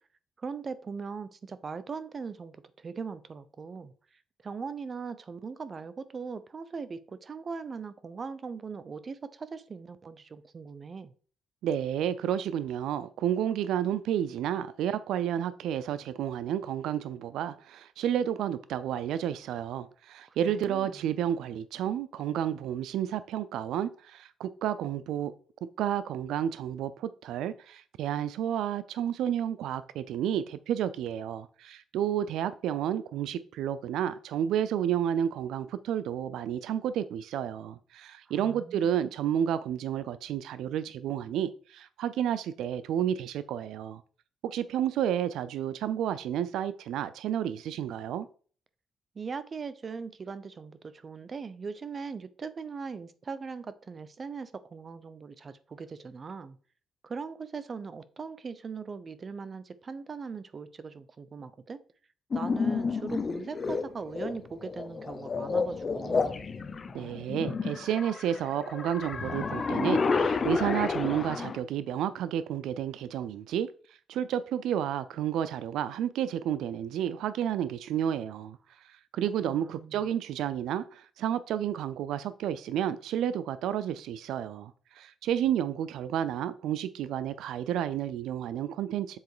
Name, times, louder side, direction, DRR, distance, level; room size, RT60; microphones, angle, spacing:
voice 1, 0.4-3.9 4.4-11.1 20.3-21.0 38.3-38.9 49.1-56.6 57.0-61.8 62.3-66.4 79.5-80.0, right 5 dB, 40° right, 0.6 m, -40 dB
voice 2, 11.6-25.3 25.8-44.0 44.4-48.3 66.9-73.7 74.1-89.2, right 10 dB, 80° right, 0.4 m, -31 dB
sound 1, 62.3-71.6, left 4 dB, 40° left, 0.8 m, -30 dB
7.2 x 3.8 x 4.8 m
cardioid pair, 90°, 0 cm